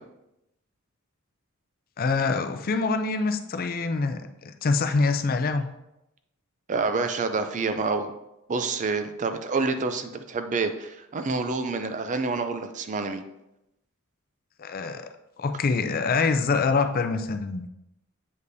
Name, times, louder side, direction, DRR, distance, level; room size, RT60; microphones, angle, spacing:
voice 1, 2.0-5.6 14.6-15.1 15.4-17.7, left 4 dB, 40° left, 8 dB, 0.4 m, -25 dB
voice 2, 6.7-8.1 8.5-13.2, right 4 dB, 35° right, 8 dB, 0.4 m, -28 dB
8.0 x 5.2 x 2.7 m, 0.89 s
head